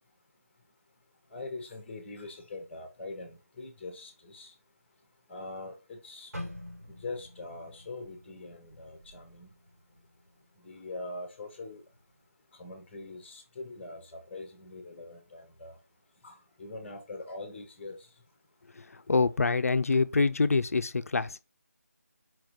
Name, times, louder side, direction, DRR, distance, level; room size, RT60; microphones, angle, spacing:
voice 1, 1.3-4.5 5.3-6.3 6.9-9.5 10.6-11.8 12.6-15.7 16.2-18.0, left 2 dB, 10° left, 0.7 m, -43 dB
sound 1, 6.3-10.4 10.7-11.0 11.6-12.0, left 1 dB, 75° right, 2.0 m, -46 dB
voice 2, 19.1-21.4, left 4 dB, 65° left, 0.4 m, -25 dB
4.5 x 3.8 x 3.0 m
figure-of-eight pair, 165°, 8 cm